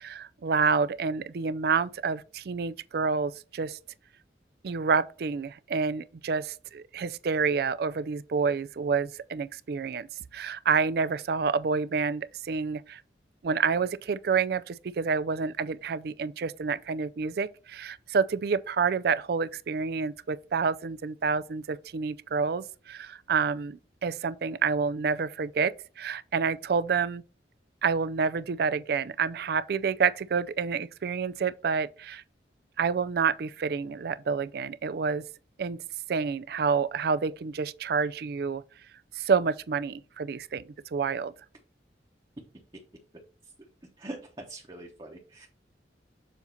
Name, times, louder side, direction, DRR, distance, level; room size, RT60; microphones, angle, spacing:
voice 1, 0.0-3.8 4.6-10.1 10.3-13.0 13.4-27.2 27.8-32.2 32.8-35.2 35.6-35.8 36.1-38.6 39.1-41.3, right 5 dB, 55° right, 0.4 m, -28 dB
voice 2, 44.0-45.5, right 2 dB, 25° right, 1.0 m, -43 dB
7.0 x 2.7 x 5.7 m
head